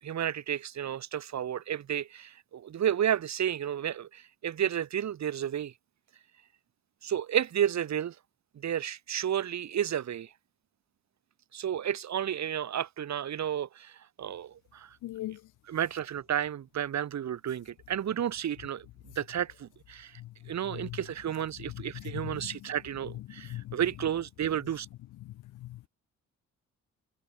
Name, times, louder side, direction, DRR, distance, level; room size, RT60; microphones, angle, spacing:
voice 1, 0.0-5.7 7.0-8.2 8.5-10.3 11.5-15.0 15.7-20.2 20.5-24.9, right 10 dB, 65° right, 7.2 m, -32 dB
voice 2, 15.0-15.4 20.2-20.3 20.7-21.0 21.9-22.6 23.3-23.8 25.2-25.9, left 15 dB, 85° left, 2.4 m, -40 dB
cardioid pair, 90°, 30 cm